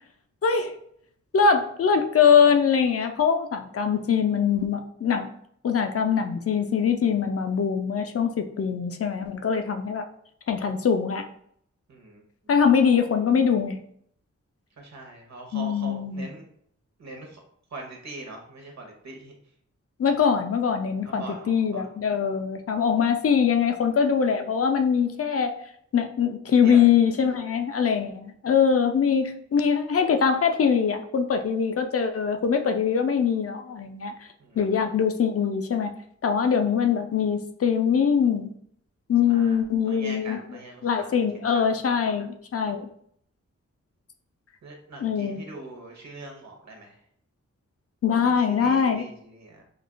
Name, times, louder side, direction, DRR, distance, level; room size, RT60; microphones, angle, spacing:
voice 1, 0.4-0.7 1.3-5.3 5.6-10.0 10.5-11.2 12.5-13.8 15.5-16.3 20.0-25.5 25.9-34.1 34.6-36.0 36.2-38.5 39.1-40.4 40.8-42.9 45.0-45.4 48.0-49.1, left 7 dB, 50° left, 6 dB, 0.5 m, -23 dB
voice 2, 11.9-12.2 14.8-16.4 17.0-17.4 17.7-19.3 21.1-21.9 26.5-26.9 27.4-27.6 34.4-34.6 39.3-39.6 39.9-41.2 41.5-42.2 44.6-47.0 48.2-49.6, right 2 dB, 65° right, 1 dB, 1.1 m, -42 dB
5.2 x 2.4 x 2.2 m, 0.67 s
wide cardioid pair, 90°, 29 cm